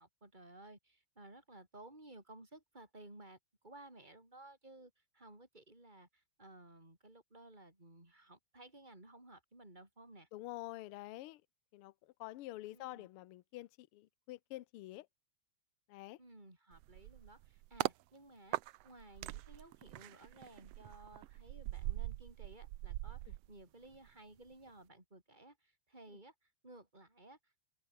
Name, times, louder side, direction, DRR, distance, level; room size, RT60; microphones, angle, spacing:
voice 1, 0.0-3.4 3.6-10.3 12.7-13.1 16.2-18.6 18.8-27.6, right 1 dB, 15° right, 7.5 m, -57 dB
voice 2, 10.3-11.4 11.7-15.1 15.9-16.2, left 17 dB, 70° left, 1.3 m, -48 dB
sound 1, 16.7-18.0 18.5-24.1 24.4-24.7, right 17 dB, 75° right, 1.5 m, -42 dB
omnidirectional pair, 3.3 m